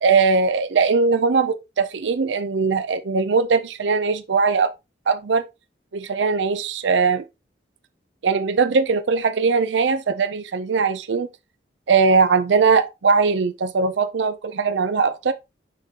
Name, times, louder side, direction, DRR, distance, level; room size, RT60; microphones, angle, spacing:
voice 1, 0.0-4.7 5.1-5.4 5.9-7.2 8.2-11.3 11.9-15.3, right 4 dB, 80° right, 0.5 m, -20 dB
10.0 x 3.7 x 2.8 m
head